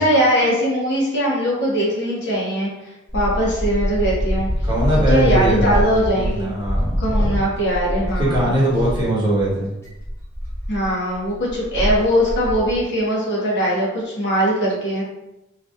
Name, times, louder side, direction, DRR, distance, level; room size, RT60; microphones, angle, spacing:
voice 1, 0.0-2.7 3.1-4.5 5.1-6.5 7.0-8.5 10.7-15.0, equal, 55° left, -5 dB, 1.2 m, -20 dB
sound 1, 3.1-9.1 9.4-9.5 9.8-12.8, equal, 10° left, 1.1 m, -24 dB
voice 2, 4.6-7.3 8.2-9.7, right 1 dB, 20° right, -6 dB, 1.1 m, -21 dB
3.1 x 2.8 x 3.4 m, 0.93 s
head